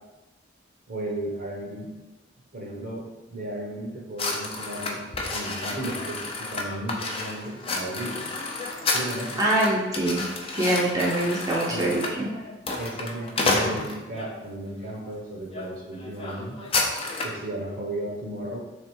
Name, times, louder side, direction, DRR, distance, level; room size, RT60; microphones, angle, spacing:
voice 1, 0.9-1.9 2.5-8.3 8.9-9.4 11.7-11.9 12.8-16.6 17.2-18.6, right 1 dB, 50° right, -1 dB, 0.9 m, -34 dB
sound 1, 4.2-14.3 14.9-15.1 15.5-15.7 15.9-17.4, left 3 dB, 30° left, 0.5 m, -30 dB
voice 2, 9.4-10.2 10.5-12.3, right 1 dB, 20° right, -5 dB, 0.6 m, -24 dB
3.5 x 3.4 x 4.4 m, 1.1 s
head